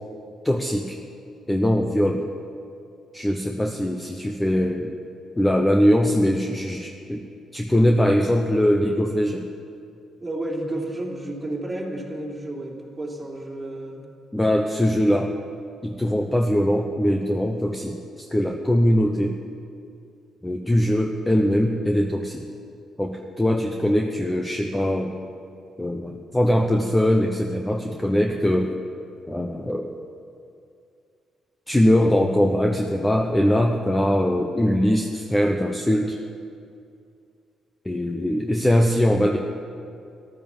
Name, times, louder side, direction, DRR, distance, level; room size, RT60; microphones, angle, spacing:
voice 1, 0.4-1.0 1.5-2.3 3.1-4.9 5.4-7.3 7.5-9.5 14.3-15.3 15.8-19.4 20.4-22.5 23.0-25.2 25.8-28.7 29.3-29.9 31.7-36.2 37.8-39.4, equal, 10° left, 3 dB, 1.0 m, -21 dB
voice 2, 10.2-14.0, right 1 dB, 15° right, -2 dB, 3.3 m, -31 dB
14.0 x 12.0 x 7.4 m, 2.5 s
cardioid pair, 90°, 0 cm